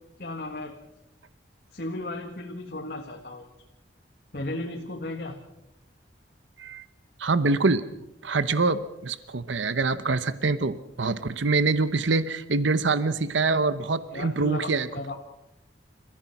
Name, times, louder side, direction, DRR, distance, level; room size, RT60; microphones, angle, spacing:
voice 1, 0.2-0.7 1.7-3.5 4.3-5.4 14.1-15.2, left 2 dB, 55° left, 2 dB, 1.7 m, -35 dB
voice 2, 7.2-7.8 8.2-14.9, right 3 dB, 80° right, 13 dB, 0.9 m, -25 dB
30.0 x 15.0 x 5.9 m, 0.87 s
head